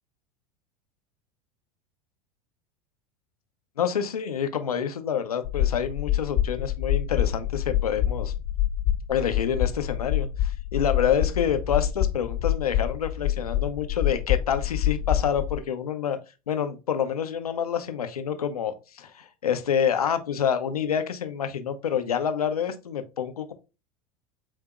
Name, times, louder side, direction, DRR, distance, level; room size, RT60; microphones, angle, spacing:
voice 1, 3.8-8.3 9.1-16.2 16.5-23.5, left 8 dB, 80° left, 8 dB, 0.7 m, -27 dB
sound 1, 5.4-15.6, left 12 dB, 45° left, 0.5 m, -26 dB
7.2 x 2.7 x 2.4 m, 0.28 s
figure-of-eight pair, 80°, 19 cm